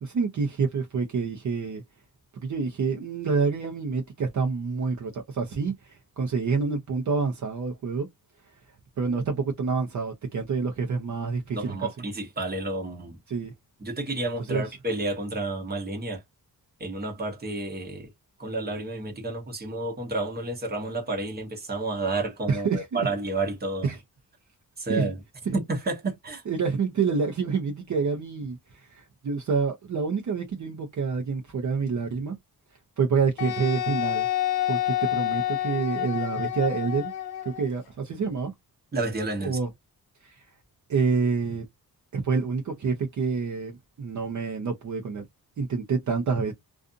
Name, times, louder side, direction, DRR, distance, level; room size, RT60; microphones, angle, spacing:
voice 1, 0.0-1.8 2.4-8.1 9.0-11.8 13.3-13.5 14.5-14.6 22.5-23.0 23.8-24.0 24.9-25.1 25.5-25.6 26.5-28.6 28.9-32.3 33.0-34.3 34.7-37.1 37.4-38.5 39.4-39.7 40.2-40.3 40.9-41.6 42.1-45.2 45.6-46.5, right 5 dB, 50° right, 0.7 m, -27 dB
voice 2, 11.5-13.2 13.8-16.2 16.8-18.1 18.4-23.9 24.8-25.2 25.5-26.4 38.9-39.6, right 2 dB, 25° right, 1.0 m, -30 dB
Wind instrument woodwind instrument, 33.4-37.7, left 13 dB, 75° left, 0.9 m, -28 dB
2.5 x 2.5 x 2.4 m
wide cardioid pair, 170°, 38 cm